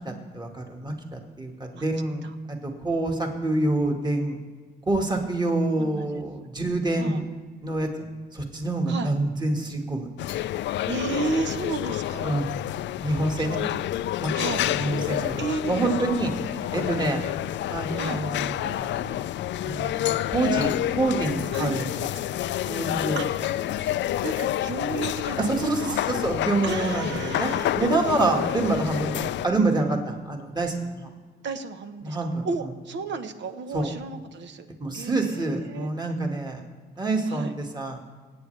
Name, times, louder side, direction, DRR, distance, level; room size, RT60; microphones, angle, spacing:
voice 1, 0.1-4.4 4.9-7.3 7.6-7.9 8.3-10.1 12.2-12.5 13.0-13.6 14.2-14.3 14.7-16.3 16.7-17.2 17.7-19.2 19.6-22.1 22.7-23.2 25.4-27.5 27.7-31.1 32.0-32.4 33.7-33.9 34.8-36.6 37.0-38.0, right 2 dB, 20° right, 2 dB, 2.0 m, -27 dB
voice 2, 5.8-6.2 7.0-7.2 8.9-9.1 10.9-12.4 13.2-13.3 14.3-14.6 15.4-16.5 17.9-18.2 21.5-21.8 23.1-23.5 24.2-26.0 26.6-28.8 31.4-34.7 34.9-35.9 37.3-37.5, right 4 dB, 65° right, 8 dB, 1.2 m, -33 dB
sound 1, 10.2-29.5, left 13 dB, 65° left, 0.4 m, -29 dB
25.5 x 8.9 x 3.4 m, 1.5 s
cardioid pair, 90°, 20 cm